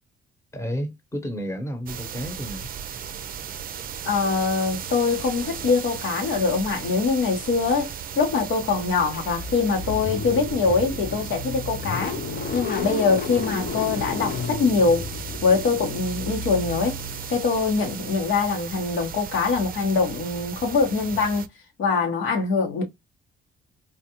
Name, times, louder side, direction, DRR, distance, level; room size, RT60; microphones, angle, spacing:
voice 1, 0.5-2.7, equal, 15° left, 1.0 m, -31 dB
sound 1, 1.9-21.5, right 8 dB, 45° right, 0.5 m, -36 dB
voice 2, 4.0-12.1 12.5-15.1 15.4-17.0 17.3-21.5 21.8-22.8, left 4 dB, 80° left, 1.3 m, -23 dB
Car / Engine starting, 9.1-17.9, left 4 dB, 50° left, 0.7 m, -33 dB
4.1 x 2.3 x 3.0 m
cardioid pair, 90°, 20 cm